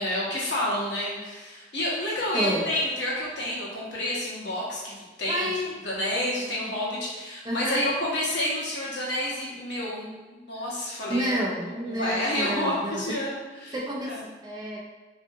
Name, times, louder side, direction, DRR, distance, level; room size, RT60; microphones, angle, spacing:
voice 1, 0.0-5.5 5.8-11.5 11.9-13.7 14.0-14.2, left 1 dB, 85° left, -6 dB, 0.9 m, -29 dB
voice 2, 2.3-2.7 5.3-5.7 7.4-7.8 11.1-13.0 13.7-14.8, equal, 20° right, -3 dB, 0.4 m, -29 dB
2.6 x 2.3 x 2.6 m, 1.2 s
head